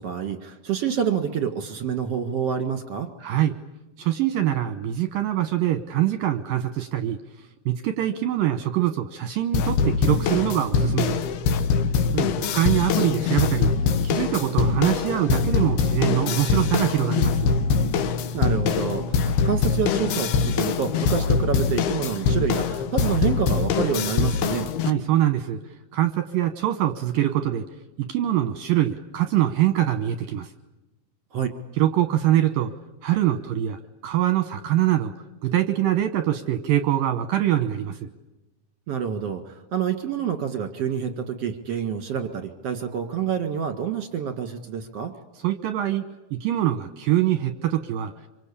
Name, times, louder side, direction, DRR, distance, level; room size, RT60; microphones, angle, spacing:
voice 1, 0.0-3.1 12.1-12.3 18.3-24.7 31.3-31.5 38.9-45.1, right 7 dB, 50° right, 7 dB, 2.0 m, -27 dB
voice 2, 3.2-3.6 4.0-7.2 7.7-11.2 12.4-13.7 14.0-17.5 24.8-25.6 25.9-27.7 28.0-30.5 31.8-32.7 33.0-35.1 35.4-38.1 45.4-46.0 46.3-48.1, right 12 dB, 70° right, 10 dB, 2.3 m, -23 dB
sound 1, 9.5-24.9, left 5 dB, 70° left, 3.0 m, -23 dB
26.5 x 25.0 x 8.5 m, 0.99 s
omnidirectional pair, 5.2 m